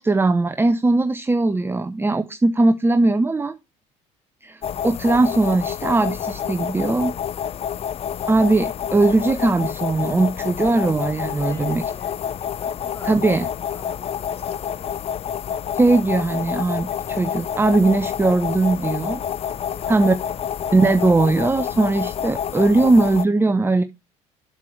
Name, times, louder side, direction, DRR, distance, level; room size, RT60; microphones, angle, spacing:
voice 1, 0.0-3.6 4.4-7.2 8.3-11.8 13.0-13.5 15.8-19.2 19.9-20.1 20.7-23.8, right 2 dB, 15° right, 0.7 m, -19 dB
sound 1, 4.6-23.3, left 8 dB, 40° left, 0.5 m, -28 dB
voice 2, 11.3-13.4 13.7-15.0 19.7-20.6, left 1 dB, 15° left, 3.0 m, -45 dB
8.3 x 7.7 x 3.2 m
hypercardioid pair, 65°, 16 cm